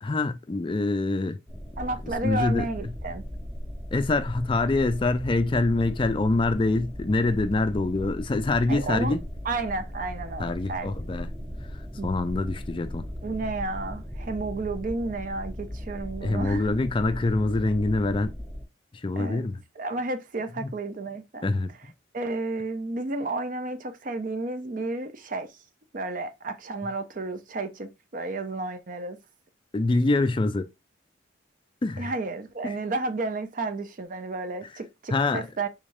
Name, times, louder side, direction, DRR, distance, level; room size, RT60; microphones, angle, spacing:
voice 1, 0.0-1.4 2.2-2.7 3.9-9.2 10.4-11.3 12.0-13.1 16.2-18.3 19.0-19.6 20.6-20.7 21.4-21.7 29.7-30.7 31.8-32.1 32.6-32.7 35.1-35.4, left 2 dB, 25° left, 0.4 m, -25 dB
sound 1, 1.5-18.6, equal, 5° right, 0.7 m, -37 dB
voice 2, 1.8-3.2 8.7-9.2 9.4-10.9 12.0-12.1 13.2-16.7 19.2-19.4 19.8-21.5 22.1-25.5 25.9-29.2 32.0-35.7, right 2 dB, 45° right, 0.5 m, -32 dB
3.6 x 3.3 x 2.6 m
head